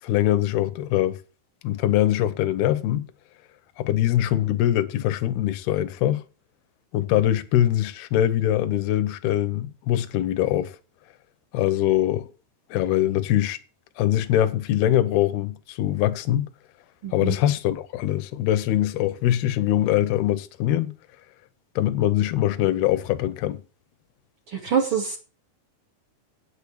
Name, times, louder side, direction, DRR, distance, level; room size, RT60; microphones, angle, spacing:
voice 1, 0.0-1.2 1.6-3.1 3.8-6.2 6.9-10.7 11.5-12.3 12.7-13.6 14.0-16.5 17.1-20.9 21.8-23.6, left 12 dB, 75° left, 2.8 m, -23 dB
voice 2, 17.0-17.4 24.5-25.2, right 7 dB, 40° right, 2.2 m, -25 dB
9.0 x 8.5 x 8.4 m
omnidirectional pair, 4.8 m